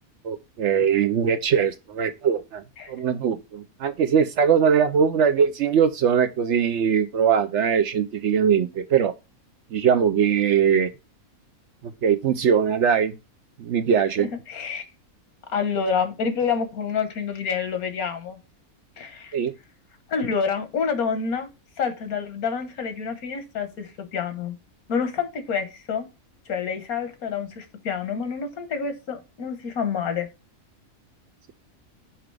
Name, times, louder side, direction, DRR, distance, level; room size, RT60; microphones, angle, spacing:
voice 1, 0.2-2.6 2.9-9.1 9.7-10.9 12.0-13.2 13.6-14.3 19.3-19.5, right 7 dB, 65° right, 0.8 m, -21 dB
voice 2, 14.2-14.8 15.5-18.4 19.0-19.4 20.1-21.5 21.8-24.6 24.9-26.1 26.5-30.3, left 6 dB, 80° left, 1.6 m, -28 dB
5.9 x 4.9 x 3.2 m
omnidirectional pair, 1.5 m